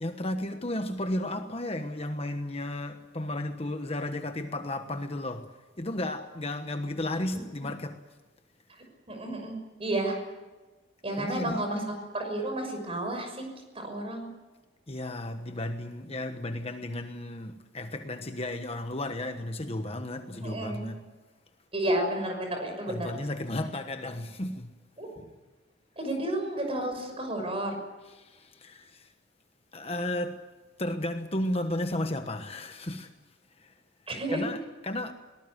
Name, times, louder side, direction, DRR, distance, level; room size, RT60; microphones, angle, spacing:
voice 1, 0.0-8.0 11.2-12.0 14.9-21.1 22.9-24.7 28.1-29.1 29.7-30.5 30.8-33.1 33.6-33.7 34.3-35.1, left 1 dB, 30° left, 1.2 m, -34 dB
voice 2, 9.1-10.2 11.0-11.8 12.1-13.4 13.7-14.3 20.3-20.8 21.7-23.1 25.0-25.1 26.0-27.7 34.1-34.4, right 1 dB, 30° right, 6.1 m, -31 dB
22.5 x 19.5 x 9.4 m
head